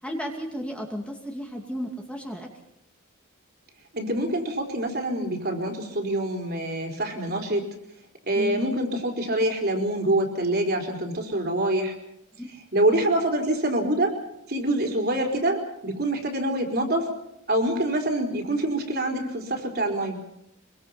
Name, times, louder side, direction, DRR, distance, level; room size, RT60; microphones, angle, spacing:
voice 1, 0.0-2.5 8.3-8.6 12.4-12.5, equal, 5° left, 1 dB, 2.5 m, -33 dB
voice 2, 3.9-7.7 8.3-11.9 12.7-14.2 14.5-17.1 17.5-20.2, right 1 dB, 50° right, 2 dB, 4.4 m, -25 dB
24.5 x 23.5 x 5.8 m, 0.82 s
head